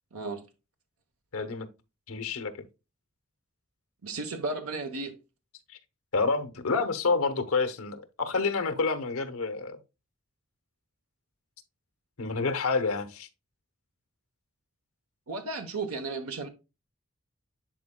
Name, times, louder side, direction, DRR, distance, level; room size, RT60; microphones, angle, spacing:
voice 1, 0.1-0.4 4.0-5.1 15.3-16.5, right 3 dB, 90° right, 0.9 m, -34 dB
voice 2, 1.3-1.7 2.1-2.6 5.7-5.8 6.1-9.8 12.2-13.3, left 4 dB, 80° left, 0.9 m, -28 dB
10.0 x 4.4 x 2.2 m
head